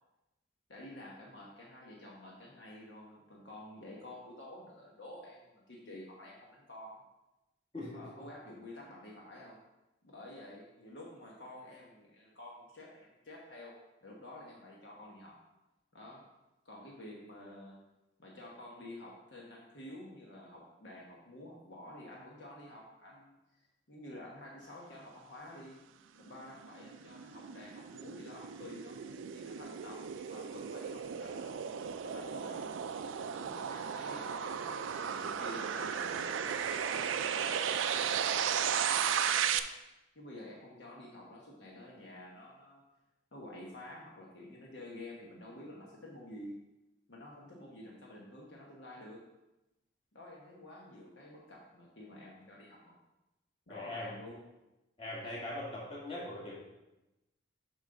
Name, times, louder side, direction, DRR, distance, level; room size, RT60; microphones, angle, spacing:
voice 1, 0.7-7.0 7.9-9.6 10.0-15.4 15.9-16.2 16.6-17.8 18.2-23.4 23.9-25.8 26.2-31.7 32.0-32.7 33.4-39.5 40.1-42.8 43.3-46.6 47.1-49.3 50.1-53.0 53.7-54.4, left 1 dB, 65° left, -3 dB, 1.1 m, -50 dB
sound 1, 26.4-39.6, right 8 dB, 85° right, 0.4 m, -35 dB
voice 2, 53.7-54.1 55.0-56.5, left 1 dB, 30° left, -5 dB, 1.9 m, -41 dB
7.2 x 5.5 x 3.8 m, 0.97 s
head